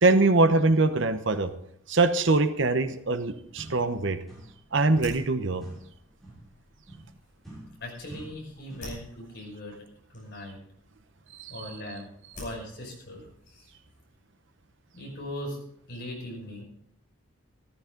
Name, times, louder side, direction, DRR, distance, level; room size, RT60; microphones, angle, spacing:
voice 1, 0.0-1.5 1.9-4.2 4.7-5.6 11.4-11.6, right 3 dB, 60° right, 10 dB, 0.9 m, -23 dB
sound 1, 3.6-4.7 4.9-9.0, right 1 dB, ahead, 5.8 m, -48 dB
sound 2, 3.9-14.2, left 1 dB, 40° left, 6.5 m, -51 dB
voice 2, 7.8-9.8 10.1-10.6 11.5-12.1 12.4-13.7 14.9-15.6 15.9-16.6, left 1 dB, 55° left, -1 dB, 5.5 m, -39 dB
14.5 x 14.0 x 3.9 m, 0.71 s
head